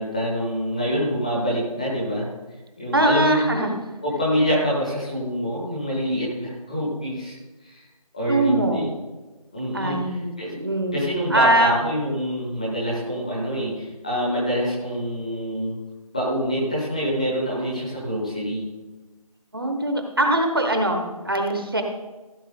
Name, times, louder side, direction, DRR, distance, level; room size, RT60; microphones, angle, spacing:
voice 1, 0.0-2.3 2.8-3.4 4.0-7.3 7.6-7.9 8.1-8.8 9.5-10.5 10.9-15.8 16.1-18.7, equal, 10° left, -6 dB, 1.2 m, -26 dB
voice 2, 2.9-3.7 8.3-8.9 9.7-11.8 19.5-21.8, right 1 dB, 40° right, 4 dB, 1.1 m, -22 dB
14.5 x 7.2 x 3.8 m, 1.2 s
figure-of-eight pair, 175°, 19 cm